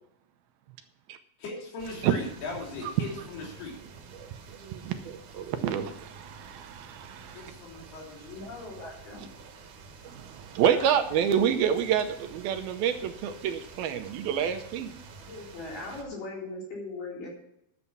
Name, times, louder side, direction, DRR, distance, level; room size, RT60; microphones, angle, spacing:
voice 1, 1.4-3.8 7.3-8.5, left 3 dB, 75° left, -1 dB, 5.1 m, -39 dB
sound 1, 1.8-16.0, right 5 dB, 60° right, 2.6 m, -49 dB
voice 2, 4.1-7.5 10.0-14.9, right 8 dB, 80° right, 8 dB, 2.5 m, -28 dB
voice 3, 8.2-9.3 10.6-10.8 15.2-17.3, left 2 dB, 55° left, -3 dB, 5.3 m, -39 dB
11.5 x 8.2 x 5.7 m, 0.78 s
omnidirectional pair, 4.7 m